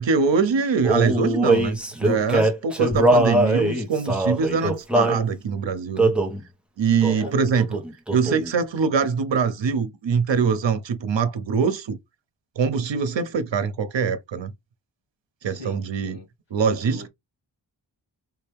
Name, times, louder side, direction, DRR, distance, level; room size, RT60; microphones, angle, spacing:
voice 1, 0.0-6.1 6.8-7.8 8.1-12.0 12.6-14.5 15.4-16.2 16.5-17.1, right 5 dB, 80° right, 1.0 m, -23 dB
Male singing, 0.8-5.2 6.0-6.4 7.0-7.3 7.6-8.5, right 1 dB, ahead, 1.3 m, -21 dB
voice 2, 6.9-7.4 15.4-16.3 16.8-17.1, left 1 dB, 70° left, 2.7 m, -40 dB
5.2 x 2.9 x 3.4 m
wide cardioid pair, 115°, 44 cm